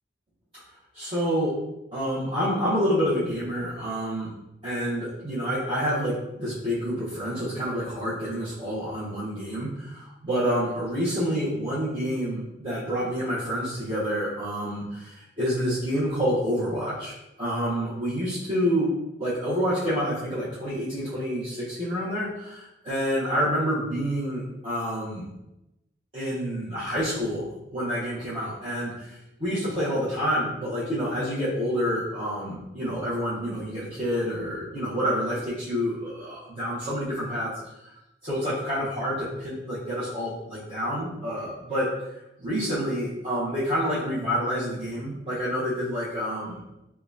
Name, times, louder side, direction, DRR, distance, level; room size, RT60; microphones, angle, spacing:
voice 1, 0.9-1.6 1.9-4.3 4.6-18.9 19.2-25.3 26.1-37.6 38.2-41.9 42.4-46.6, equal, 30° right, -12 dB, 0.9 m, -28 dB
5.3 x 2.2 x 2.6 m, 0.91 s
head